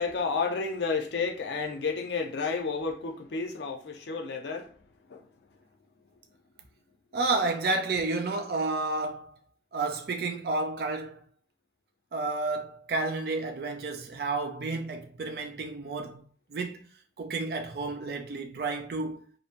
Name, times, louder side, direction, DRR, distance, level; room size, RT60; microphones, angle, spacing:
voice 1, 0.0-4.7 5.1-5.2, left 4 dB, 75° left, 0.5 m, -31 dB
voice 2, 7.1-9.3 9.7-11.2 12.1-16.2 16.5-16.9 17.2-19.3, right 3 dB, 60° right, 0.4 m, -31 dB
2.6 x 2.1 x 2.8 m
head